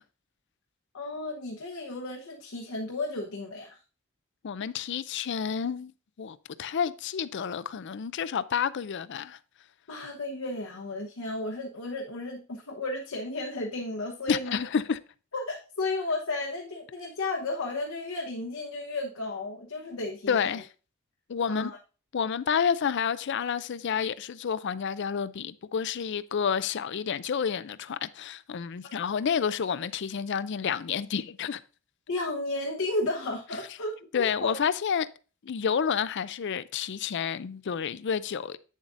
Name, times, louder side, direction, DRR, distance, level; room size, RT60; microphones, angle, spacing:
voice 1, 0.9-3.8 9.9-14.6 15.3-20.3 21.5-21.8 29.0-29.1 32.1-34.5, left 2 dB, 85° left, 1.0 m, -33 dB
voice 2, 4.4-5.9 6.2-9.4 14.3-15.0 20.3-20.7 21.3-21.7 22.1-31.6 34.1-35.1 35.4-38.6, left 7 dB, 55° left, 0.4 m, -29 dB
8.6 x 7.3 x 2.5 m
head